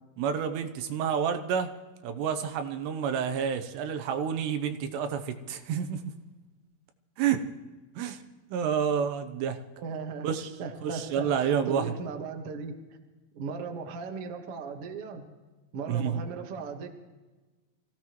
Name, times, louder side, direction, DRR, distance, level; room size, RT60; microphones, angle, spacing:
voice 1, 0.2-1.7 2.0-6.1 7.2-7.4 8.0-8.2 8.5-9.6 10.2-10.5 10.8-11.8 15.9-16.2, right 7 dB, 90° right, 8 dB, 3.1 m, -29 dB
voice 2, 9.8-10.3 10.6-11.2 11.7-12.7 13.3-15.2 15.7-16.9, right 5 dB, 60° right, 3 dB, 1.5 m, -37 dB
25.0 x 16.0 x 3.1 m, 1.2 s
omnidirectional pair, 4.9 m